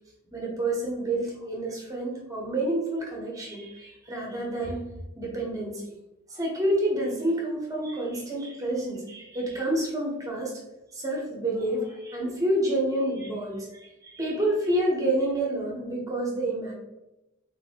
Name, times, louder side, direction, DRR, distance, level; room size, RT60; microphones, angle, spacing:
voice 1, 0.3-4.9 5.2-5.8 6.3-10.6 10.9-16.7, right 1 dB, 15° right, -2 dB, 0.7 m, -28 dB
3.4 x 2.6 x 2.7 m, 0.96 s
head